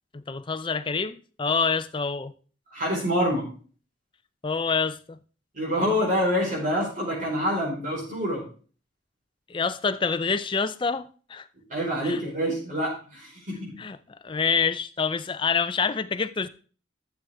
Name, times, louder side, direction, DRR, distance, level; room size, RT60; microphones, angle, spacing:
voice 1, 0.1-2.3 4.4-5.2 9.5-11.5 12.0-12.2 13.8-14.0 14.2-16.5, left 5 dB, 25° left, 0.5 m, -27 dB
voice 2, 2.7-3.4 5.5-8.4 11.7-13.8, equal, 45° right, 4.5 m, -26 dB
12.5 x 6.9 x 3.5 m
head